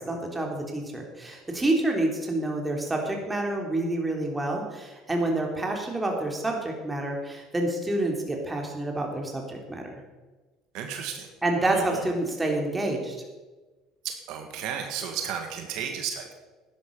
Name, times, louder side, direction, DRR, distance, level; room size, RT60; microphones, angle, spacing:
voice 1, 0.0-9.9 11.4-13.1, right 2 dB, 15° right, 1 dB, 3.4 m, -28 dB
voice 2, 10.7-11.3 11.6-12.1 14.0-16.3, right 8 dB, 70° right, 4 dB, 1.7 m, -33 dB
12.5 x 10.0 x 5.5 m, 1.2 s
supercardioid pair, 85°, 0 cm